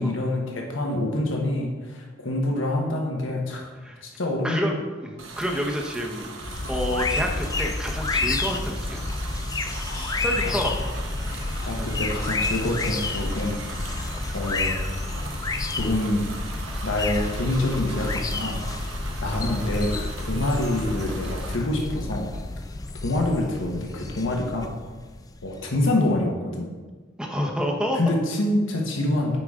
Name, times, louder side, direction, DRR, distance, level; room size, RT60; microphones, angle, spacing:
voice 1, 0.0-3.7 4.0-4.7 9.9-10.5 11.6-13.6 14.3-14.8 15.7-16.2 16.8-18.6 19.2-22.3 23.0-24.7 25.4-26.7 27.9-29.4, left 1 dB, 80° left, 0 dB, 1.2 m, -26 dB
voice 2, 4.4-9.1 10.2-10.7 11.8-11.9 27.2-28.1, equal, 5° right, 0 dB, 0.8 m, -29 dB
sound 1, 5.2-21.6, right 3 dB, 85° right, 1.0 m, -39 dB
sound 2, 6.4-25.8, left 3 dB, 20° left, 0.3 m, -30 dB
8.3 x 4.9 x 3.7 m, 1.3 s
head